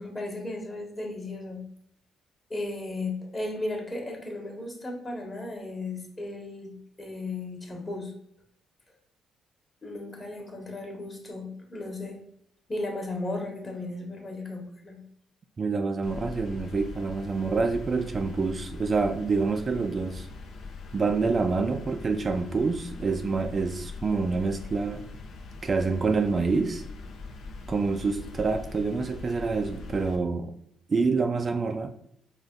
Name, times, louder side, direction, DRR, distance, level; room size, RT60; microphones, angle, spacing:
voice 1, 0.0-1.6 2.5-8.1 9.8-12.2 12.7-15.0, left 2 dB, 25° left, 1 dB, 1.2 m, -35 dB
voice 2, 15.6-20.3 20.9-25.0 25.6-26.8 27.7-30.5 30.9-31.9, right 4 dB, 35° right, 6 dB, 0.4 m, -27 dB
sound 1, 16.0-30.2, left 3 dB, 70° left, 0.6 m, -42 dB
5.0 x 2.2 x 3.7 m, 0.71 s
cardioid pair, 90°, 0 cm